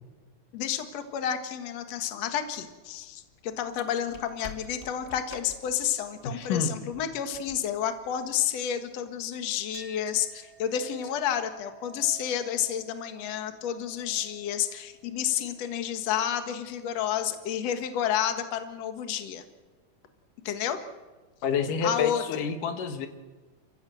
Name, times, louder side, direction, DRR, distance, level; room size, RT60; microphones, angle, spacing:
voice 1, 0.5-19.4 20.4-20.8 21.8-22.2, left 9 dB, 55° left, 7 dB, 2.5 m, -30 dB
sound 1, 2.6-8.6, left 3 dB, 25° left, 1.4 m, -49 dB
voice 2, 6.2-6.7 21.4-23.1, left 6 dB, 75° left, 7 dB, 2.9 m, -28 dB
Chink clink, 9.7-16.8, right 7 dB, 40° right, 3.3 m, -54 dB
29.5 x 15.0 x 7.8 m, 1.3 s
omnidirectional pair, 3.8 m